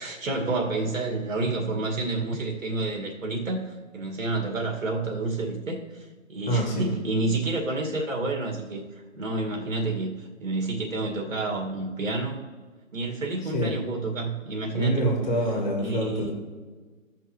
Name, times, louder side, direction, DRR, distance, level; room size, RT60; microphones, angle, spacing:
voice 1, 0.0-8.8 9.1-12.4 12.9-15.2 15.8-16.3, right 2 dB, 70° right, 1 dB, 2.1 m, -29 dB
voice 2, 6.5-6.9 13.4-13.7 14.7-16.3, equal, 35° left, 0 dB, 2.0 m, -26 dB
15.5 x 6.0 x 3.1 m, 1.4 s
hypercardioid pair, 170°, 41 cm